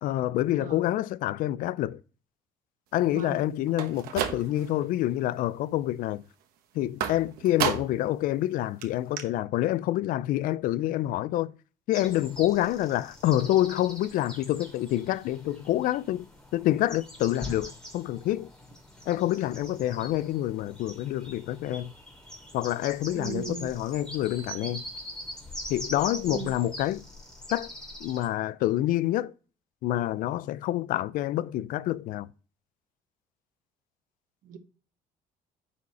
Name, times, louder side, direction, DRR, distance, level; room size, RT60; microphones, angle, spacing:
voice 1, 0.0-2.0 2.9-6.2 6.7-11.5 11.9-16.3 16.5-18.5 19.1-21.9 22.5-24.8 25.7-27.0 27.5-27.7 28.0-29.3 29.8-32.3, left 14 dB, 70° left, 0.4 m, -27 dB
voice 2, 0.6-0.9 3.1-3.4 23.1-23.7 26.2-26.5 34.4-34.6, right 7 dB, 65° right, 1.2 m, -37 dB
sound 1, 3.7-4.8 5.2-5.7 7.0-8.1 8.5-8.6 8.8-8.9 9.2-9.3, right 9 dB, 85° right, 1.2 m, -32 dB
sound 2, 11.9-28.3, equal, 5° left, 2.5 m, -43 dB
9.5 x 4.2 x 4.1 m
cardioid pair, 135°, 15 cm